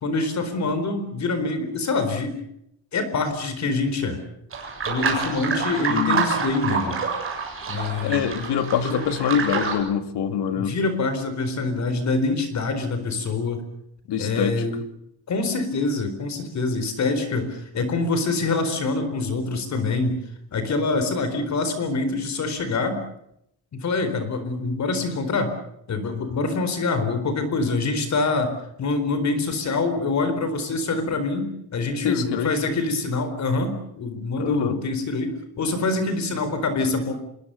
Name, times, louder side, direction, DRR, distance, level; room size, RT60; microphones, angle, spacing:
voice 1, 0.0-2.4 2.9-4.2 4.9-7.0 7.7-8.3 8.8-9.0 10.1-10.2 10.6-13.6 14.2-14.8 15.3-20.2 20.5-23.0 23.7-25.5 25.9-28.5 28.8-37.1, left 3 dB, 40° left, 10 dB, 4.3 m, -25 dB
sound 1, 4.5-9.7, right 5 dB, 30° right, 7.4 m, -27 dB
voice 2, 5.9-6.3 8.0-10.8 14.1-14.6 32.0-32.5 34.4-34.8, left 8 dB, 75° left, 9 dB, 2.6 m, -25 dB
26.5 x 22.5 x 6.9 m, 0.75 s
cardioid pair, 175°, 41 cm